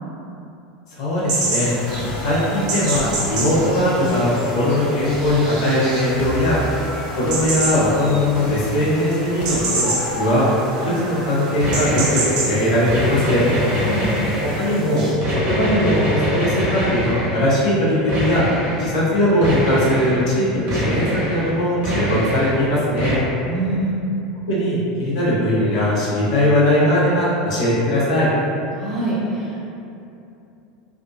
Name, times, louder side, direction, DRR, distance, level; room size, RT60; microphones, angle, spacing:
voice 1, 1.0-1.7 2.2-6.6 7.2-10.5 11.0-13.4 14.6-18.4 18.8-23.2 24.5-28.3, left 1 dB, 85° left, -8 dB, 0.9 m, -19 dB
sound 1, 1.3-15.1, right 2 dB, 80° right, 1.1 m, -28 dB
sound 2, 1.9-12.8, left 1 dB, 45° left, 0.4 m, -33 dB
sound 3, 11.6-12.5 12.9-14.8 15.2-17.6 18.1-18.9 19.4-20.3 20.7-21.5 21.8-22.7 23.0-23.2, equal, 50° right, 1.0 m, -24 dB
voice 2, 23.5-24.1 28.7-29.7, right 2 dB, 5° right, -14 dB, 0.9 m, -25 dB
3.5 x 2.4 x 2.6 m, 2.8 s
supercardioid pair, 115°, 3 cm